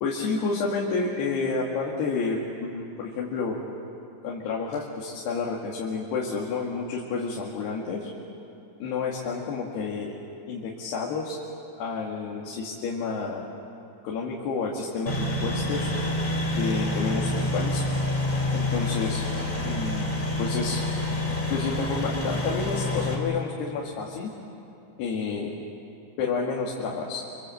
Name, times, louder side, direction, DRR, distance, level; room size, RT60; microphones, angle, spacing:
voice 1, 0.0-3.6 4.2-8.1 8.8-10.1 10.5-11.4 11.8-13.4 14.0-15.9 16.5-17.8 18.5-19.2 19.6-20.8 21.5-24.3 25.0-25.5 26.2-27.2, left 4 dB, 70° left, -2 dB, 4.1 m, -30 dB
sound 1, 15.1-23.1, left 1 dB, 10° left, 3.1 m, -27 dB
27.0 x 27.0 x 7.9 m, 2.8 s
omnidirectional pair, 5.0 m